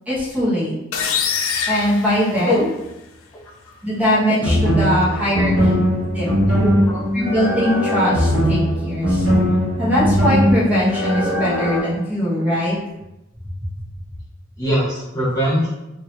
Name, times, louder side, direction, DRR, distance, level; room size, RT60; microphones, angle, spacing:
voice 1, 0.1-0.7 1.7-2.7 3.8-5.8 6.1-6.3 7.1-9.3 9.8-12.8, equal, 5° right, -10 dB, 1.2 m, -21 dB
sound 1, 0.9-2.9, left 6 dB, 85° left, 0.4 m, -24 dB
sound 2, 4.4-11.8, equal, 65° right, 1.1 m, -19 dB
voice 2, 14.6-15.7, equal, 15° left, -9 dB, 0.6 m, -21 dB
3.1 x 2.8 x 2.9 m, 0.93 s
head